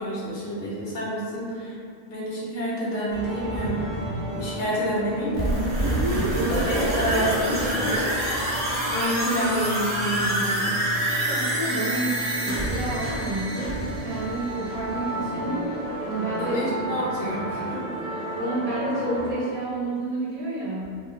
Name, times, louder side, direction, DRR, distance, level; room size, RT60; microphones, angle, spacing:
voice 1, 0.0-1.8 2.1-4.0 4.3-5.9 6.5-8.1 8.9-10.7 16.4-17.8 18.1-18.2, equal, 55° left, -6 dB, 0.6 m, -28 dB
sound 1, 3.1-19.3, right 1 dB, 5° right, 0.5 m, -34 dB
sound 2, 5.3-15.1 15.4-15.5, right 1 dB, 75° right, 0.3 m, -26 dB
voice 2, 5.9-6.3 11.3-15.7 16.0-16.6 16.9-17.0 18.3-20.9, right 2 dB, 50° right, -7 dB, 0.7 m, -30 dB
2.2 x 2.0 x 2.9 m, 2.2 s
omnidirectional pair, 1.2 m